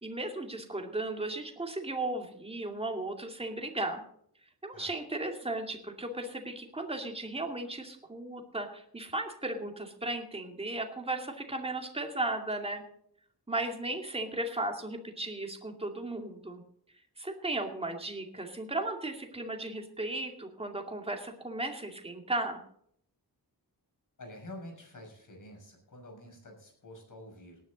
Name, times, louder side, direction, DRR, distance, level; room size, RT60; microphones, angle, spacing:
voice 1, 0.0-4.0 4.6-12.8 13.5-16.6 17.2-22.6, right 2 dB, 15° right, 3 dB, 2.3 m, -35 dB
voice 2, 24.2-27.6, left 1 dB, 50° left, 2 dB, 6.4 m, -48 dB
18.5 x 10.5 x 4.0 m, 0.66 s
wide cardioid pair, 135°, 39 cm